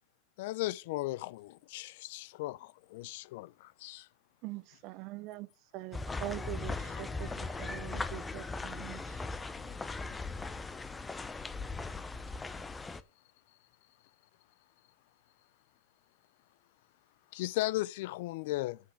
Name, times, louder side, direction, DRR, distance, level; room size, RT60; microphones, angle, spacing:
voice 1, 0.4-4.1 17.3-18.8, left 17 dB, 65° left, 0.3 m, -36 dB
voice 2, 4.4-5.5 5.7-9.2, right 18 dB, 45° right, 0.5 m, -43 dB
sound 1, 5.9-13.0, left 3 dB, 10° left, 0.5 m, -39 dB
voice 3, 6.8-7.9 9.5-11.0, left 6 dB, 30° left, 1.2 m, -55 dB
6.3 x 5.7 x 6.8 m
supercardioid pair, 150°, 0 cm